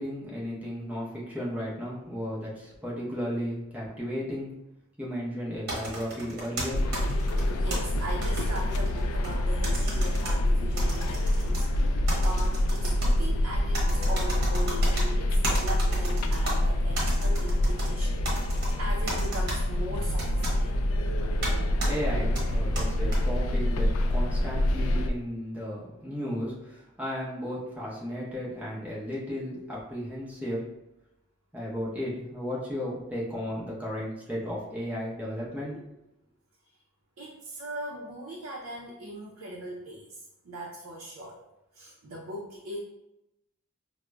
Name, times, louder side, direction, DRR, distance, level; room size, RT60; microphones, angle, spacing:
voice 1, 0.0-4.5 5.0-6.8 21.8-30.7 31.5-35.8, equal, 5° right, -6 dB, 0.7 m, -34 dB
sound 1, 5.7-7.8 8.2-9.3 9.6-10.3 10.8-11.6 12.1-13.1 13.7-15.0 15.4-16.5 16.9-17.9 18.2-18.7 19.1-19.6 20.2-20.5 21.4-21.5 21.8-21.9 22.3-23.2, right 1 dB, 50° right, 1.0 m, -34 dB
sound 2, 6.7-25.1, left 1 dB, 85° left, 0.3 m, -26 dB
voice 2, 7.3-20.7 37.2-41.4 41.7-42.8, right 1 dB, 90° right, -2 dB, 0.5 m, -40 dB
4.8 x 2.0 x 2.2 m, 0.91 s
head